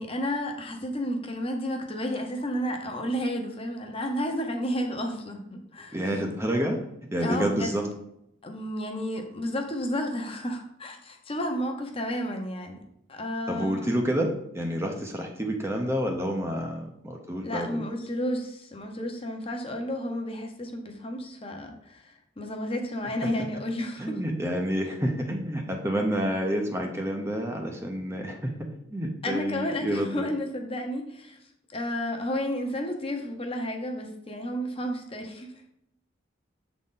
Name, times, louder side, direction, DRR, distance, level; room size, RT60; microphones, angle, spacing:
voice 1, 0.0-6.0 7.2-7.7 8.4-12.8 13.1-13.9 17.4-24.2 29.2-31.4 31.7-35.5, equal, 30° left, 3 dB, 0.8 m, -32 dB
voice 2, 5.9-6.8 7.1-7.8 13.5-17.8 23.2-23.3 24.0-30.3, equal, 15° right, 2 dB, 0.6 m, -29 dB
7.3 x 4.0 x 3.8 m, 0.78 s
head